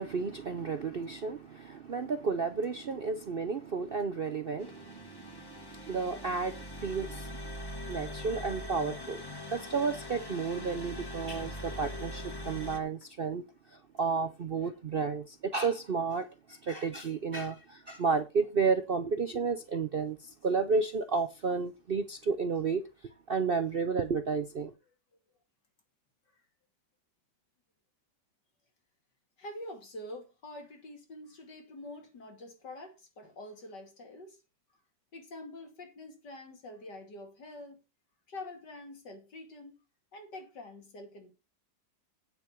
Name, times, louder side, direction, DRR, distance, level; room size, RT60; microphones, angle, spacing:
voice 1, 0.0-7.3 7.9-9.2 9.5-13.4 13.7-22.8 23.3-24.7, right 5 dB, 50° right, 0.7 m, -32 dB
sound 1, 4.6-12.8, equal, 15° left, 1.2 m, -42 dB
voice 2, 29.4-34.4 35.1-37.8 38.3-39.8 40.1-41.3, left 1 dB, 75° left, 3.3 m, -46 dB
9.1 x 7.3 x 5.8 m
omnidirectional pair, 1.9 m